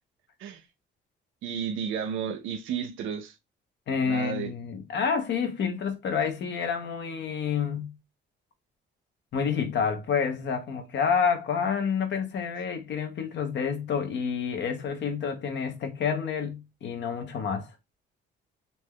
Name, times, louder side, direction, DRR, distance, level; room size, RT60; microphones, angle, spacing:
voice 1, 1.4-3.4 4.0-4.5, right 7 dB, 85° right, 0.5 m, -32 dB
voice 2, 3.9-7.9 9.3-17.7, left 6 dB, 65° left, 0.8 m, -29 dB
3.4 x 2.7 x 2.2 m
cardioid pair, 90°, 20 cm